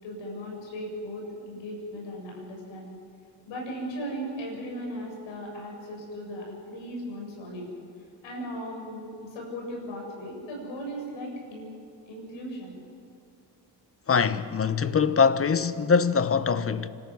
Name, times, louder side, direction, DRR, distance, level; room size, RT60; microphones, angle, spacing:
voice 1, 0.0-3.0 3.5-7.7 8.2-11.7 12.1-12.8, equal, 85° left, 7.4 m, -37 dB
voice 2, 14.1-16.9, left 6 dB, 30° left, 1.0 m, -23 dB
25.5 x 13.5 x 9.4 m
cardioid pair, 90°, 44 cm